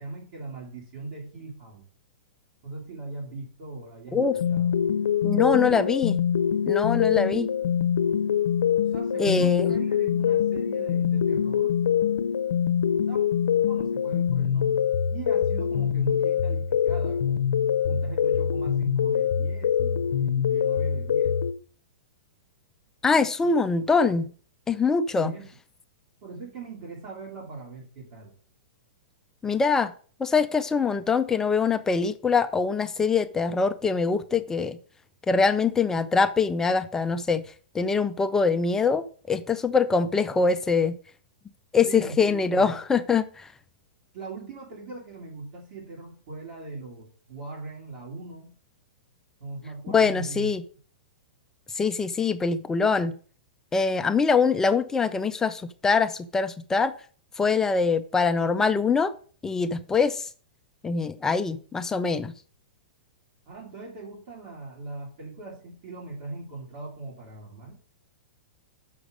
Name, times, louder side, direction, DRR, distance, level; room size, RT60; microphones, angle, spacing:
voice 1, 0.0-1.9 2.6-4.7 8.9-11.7 13.1-13.2 13.7-14.8 15.1-17.5 17.9-21.4 23.4-23.7 25.2-25.5 26.2-28.3 41.8-42.7 44.1-48.5 49.4-50.5 63.5-67.8, right 3 dB, 45° right, -3 dB, 2.7 m, -39 dB
sound 1, 4.2-21.5, left 8 dB, 85° left, 0.6 m, -24 dB
voice 2, 5.2-6.2 6.7-7.5 9.2-9.7 23.0-24.3 24.7-25.3 29.4-29.9 30.2-34.8 35.3-37.4 37.7-40.9 41.7-43.5 49.9-50.6 51.7-53.2 53.7-56.9 57.4-59.1 59.4-60.3 60.8-62.3, left 5 dB, 10° left, 9 dB, 0.4 m, -23 dB
6.0 x 5.0 x 6.5 m, 0.43 s
hypercardioid pair, 150°, 5 cm